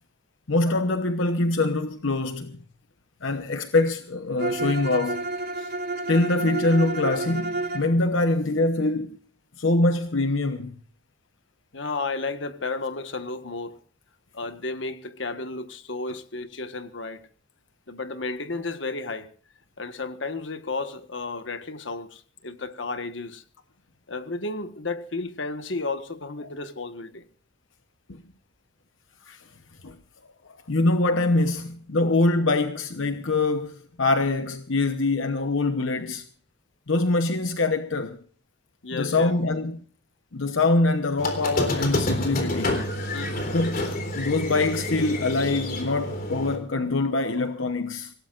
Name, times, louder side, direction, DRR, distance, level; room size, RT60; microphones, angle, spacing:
voice 1, 0.5-2.6 3.2-5.2 6.1-9.2 9.6-10.7 28.1-28.2 29.3-29.4 29.8-30.0 30.7-36.2 36.9-38.2 38.9-39.8 40.3-42.8 43.5-48.1, left 2 dB, 90° left, 1.0 m, -24 dB
Bowed string instrument, 4.4-7.9, right 2 dB, 55° right, 2.6 m, -30 dB
voice 2, 11.7-13.8 14.3-17.2 17.9-19.3 19.8-23.4 24.1-27.2 38.8-39.3 43.1-43.5, left 3 dB, 70° left, 1.5 m, -33 dB
Squeak, 41.2-46.5, left 1 dB, 50° left, 3.7 m, -28 dB
25.5 x 17.5 x 2.5 m
head